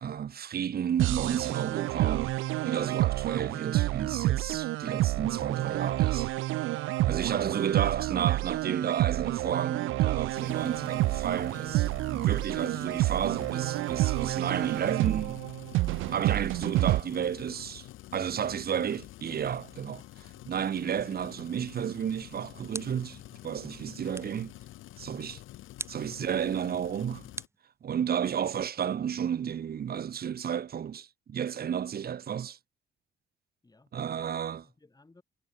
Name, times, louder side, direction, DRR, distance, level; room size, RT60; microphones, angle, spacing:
voice 1, 0.0-2.3 2.6-6.3 7.0-15.4 16.1-20.0 20.5-24.5 25.0-25.4 25.9-27.3 27.8-32.6 33.9-34.6, right 8 dB, 50° right, 1.4 m, -32 dB
sound 1, 1.0-17.0, right 17 dB, 90° right, 0.8 m, -29 dB
voice 2, 4.3-4.6 18.3-19.0 19.6-19.9 25.1-25.4 26.1-26.3 33.6-35.2, left 2 dB, 20° left, 7.4 m, -59 dB
sound 2, 10.3-27.5, left 15 dB, 90° left, 3.3 m, -48 dB
sound 3, 22.7-23.2 24.1-24.5 25.8-26.1 27.4-28.2, right 2 dB, 15° right, 2.0 m, -43 dB
cardioid pair, 90°, 20 cm